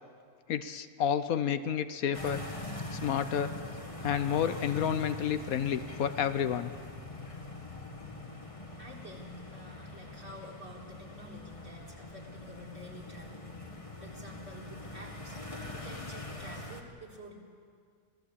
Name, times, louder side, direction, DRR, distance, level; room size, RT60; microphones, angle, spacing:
voice 1, 0.5-2.4 2.9-3.5 4.0-6.7, left 8 dB, 75° left, 11 dB, 1.2 m, -30 dB
sound 1, 2.1-16.8, left 2 dB, 20° left, 2.0 m, -43 dB
voice 2, 8.8-13.6 14.0-15.4 15.7-17.3, right 1 dB, 45° right, -1 dB, 4.4 m, -49 dB
25.5 x 18.0 x 8.6 m, 2.1 s
omnidirectional pair, 1.6 m